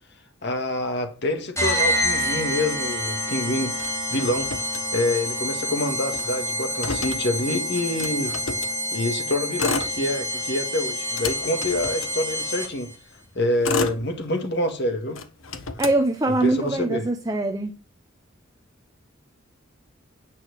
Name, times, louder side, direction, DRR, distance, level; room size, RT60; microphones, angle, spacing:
voice 1, 0.4-3.8 4.1-4.5 4.9-8.3 8.9-12.9 13.4-15.2 16.4-17.0, left 1 dB, 55° left, 1.9 m, -26 dB
sound 1, 1.6-12.9, equal, 15° left, 2.5 m, -28 dB
Motor vehicle (road), 3.7-5.4 5.7-5.8 6.0-8.8 9.4-10.5 10.9-12.7 13.3-14.7 15.1-16.7, left 4 dB, 80° left, 1.3 m, -32 dB
voice 2, 15.8-17.7, right 2 dB, 20° right, 0.8 m, -23 dB
9.3 x 6.0 x 6.6 m
head